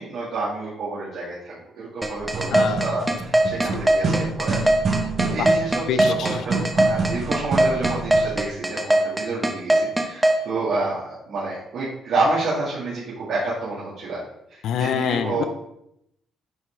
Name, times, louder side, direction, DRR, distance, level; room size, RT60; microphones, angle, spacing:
voice 1, 0.0-4.6 5.2-14.2 14.5-15.4, right 3 dB, 70° right, -8 dB, 2.0 m, -29 dB
sound 1, 2.0-10.4, right 1 dB, 10° right, 0.9 m, -19 dB
sound 2, 2.2-8.4, right 3 dB, 50° right, 1.0 m, -27 dB
voice 2, 2.5-2.8 5.4-5.5 5.9-6.4 14.6-15.4, left 8 dB, 80° left, 10 dB, 0.5 m, -25 dB
9.1 x 3.5 x 3.1 m, 0.78 s
cardioid pair, 90°, 0 cm